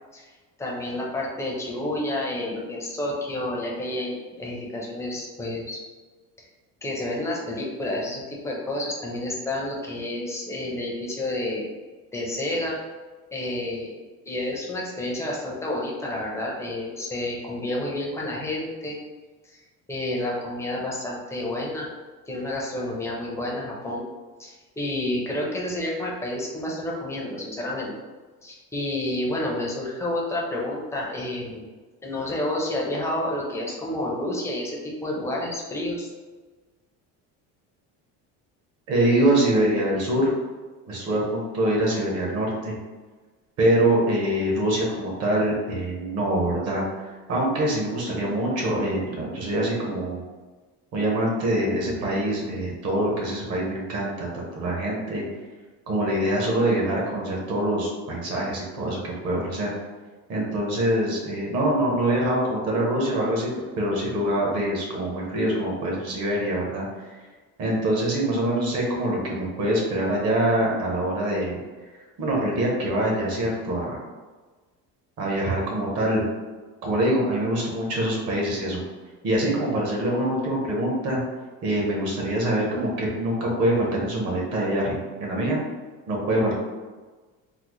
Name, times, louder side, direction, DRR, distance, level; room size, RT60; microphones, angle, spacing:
voice 1, 0.6-5.8 6.8-11.7 12.1-12.8 13.3-13.9 14.3-19.0 19.4-19.6 19.9-21.9 22.3-24.0 24.4-27.9 28.4-31.7 32.0-36.1, left 1 dB, 10° left, -3 dB, 0.4 m, -30 dB
voice 2, 38.9-40.3 40.9-42.7 43.6-50.2 50.9-55.2 55.9-59.7 60.3-63.5 63.7-67.1 67.6-71.6 71.9-74.0 75.2-76.2 76.8-78.8 79.2-81.2 81.6-85.6 86.1-86.5, right 1 dB, 50° right, -2 dB, 0.8 m, -24 dB
3.8 x 2.0 x 3.0 m, 1.3 s
cardioid pair, 165°, 33 cm